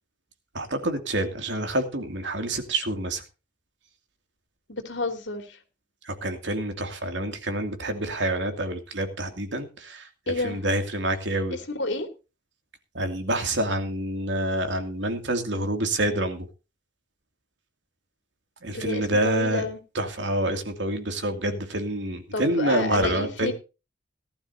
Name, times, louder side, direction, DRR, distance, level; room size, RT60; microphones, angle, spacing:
voice 1, 0.5-3.2 6.0-11.6 12.9-16.5 18.6-19.7 19.9-23.5, right 1 dB, 75° right, 6 dB, 2.6 m, -27 dB
voice 2, 4.7-5.6 10.3-10.6 11.5-12.1 18.7-19.8 22.3-23.5, left 2 dB, 75° left, 6 dB, 2.9 m, -30 dB
18.5 x 12.0 x 2.8 m, 0.30 s
head